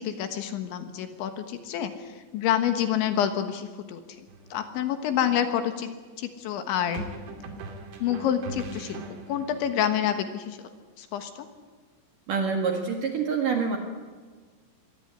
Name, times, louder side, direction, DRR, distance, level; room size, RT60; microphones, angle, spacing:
voice 1, 0.0-7.0 8.0-9.0 9.3-10.7 11.0-11.5, left 9 dB, 70° left, 8 dB, 3.5 m, -28 dB
sound 1, 4.3-4.5 6.9-9.6, right 3 dB, 90° right, 5.2 m, -40 dB
voice 2, 12.3-13.8, right 5 dB, 55° right, 3 dB, 2.6 m, -26 dB
23.5 x 18.0 x 9.7 m, 1.5 s
omnidirectional pair, 6.0 m